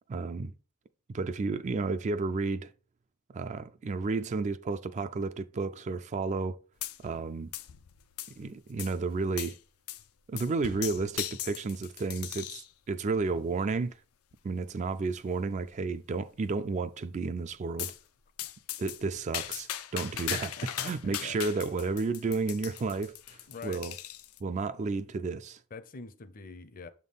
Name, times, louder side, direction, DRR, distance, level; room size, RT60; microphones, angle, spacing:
voice 1, 0.1-0.5 1.1-2.7 3.3-6.6 7.0-7.5 8.4-9.6 10.3-13.9 14.4-17.9 18.8-20.5 20.8-23.1 23.6-23.9 24.4-25.6, right 4 dB, 35° right, 0.3 m, -32 dB
sound 1, 6.8-7.3 7.5-8.4 8.8-8.9 9.4-9.6 9.9-10.1 10.4-12.7 13.3-13.7 14.3-14.4 14.7-14.8 15.1-15.2 15.7-16.1 17.8-18.0 18.4-24.4, left 12 dB, 90° left, 0.5 m, -39 dB
voice 2, 20.3-21.4 23.5-23.8 25.7-26.9, left 4 dB, 40° left, 0.5 m, -45 dB
7.0 x 3.6 x 4.0 m
head